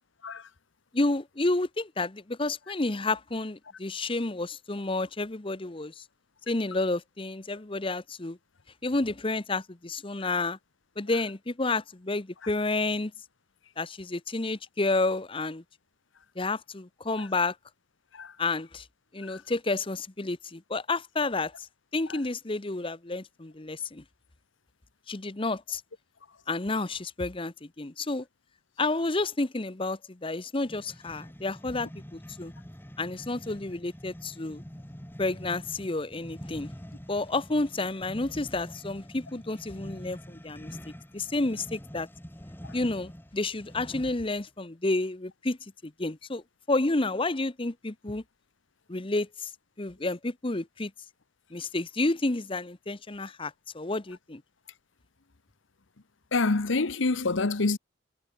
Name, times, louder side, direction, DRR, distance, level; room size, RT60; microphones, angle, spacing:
voice 1, 0.9-6.0 6.5-8.4 8.8-10.6 11.0-13.1 13.8-15.6 16.4-17.5 18.4-18.9 19.1-21.7 21.9-24.0 25.1-25.8 26.5-28.2 28.8-32.5 33.0-34.6 35.2-36.7 37.1-40.7 41.1-42.1 42.7-45.6 46.0-46.4 46.7-48.2 48.9-49.5 49.8-50.9 51.5-54.4, left 2 dB, 25° left, 0.9 m, -30 dB
sound 1, 30.6-44.4, equal, 10° left, 4.1 m, -45 dB
voice 2, 56.3-57.8, left 3 dB, 80° left, 1.0 m, -26 dB
head